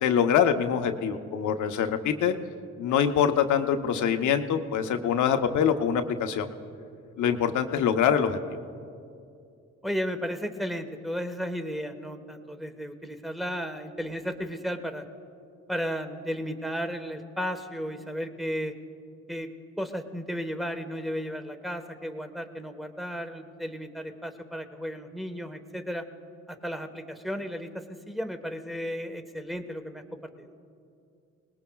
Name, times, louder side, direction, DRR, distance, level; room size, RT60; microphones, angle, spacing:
voice 1, 0.0-2.3 2.8-6.5 7.2-8.6, left 8 dB, 75° left, 6 dB, 0.9 m, -24 dB
voice 2, 9.8-15.0 15.7-18.7 19.3-19.5 19.8-26.0 26.5-30.0 30.4-30.5, equal, ahead, 7 dB, 1.2 m, -34 dB
27.5 x 19.5 x 2.3 m, 2.5 s
cardioid pair, 90°, 30 cm